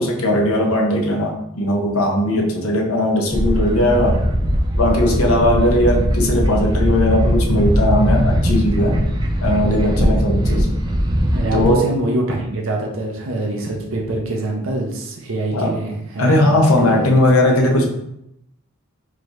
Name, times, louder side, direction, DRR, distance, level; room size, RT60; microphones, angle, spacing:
voice 1, 0.0-4.2 4.8-9.0 9.4-10.7 11.5-11.8 15.5-15.8 16.2-17.9, left 1 dB, 75° left, 0 dB, 0.8 m, -18 dB
sound 1, 3.3-11.7, equal, 20° right, 0.4 m, -19 dB
voice 2, 11.3-17.1, right 2 dB, 65° right, 0 dB, 0.7 m, -24 dB
4.9 x 2.4 x 3.0 m, 0.78 s
head